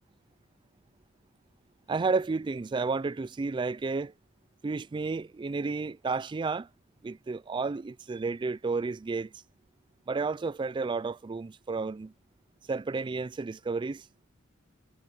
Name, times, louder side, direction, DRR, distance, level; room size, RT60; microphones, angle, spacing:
voice 1, 1.9-4.1 4.6-6.7 7.0-9.3 10.1-12.1 12.7-14.1, right 4 dB, 25° right, 0.3 m, -31 dB
head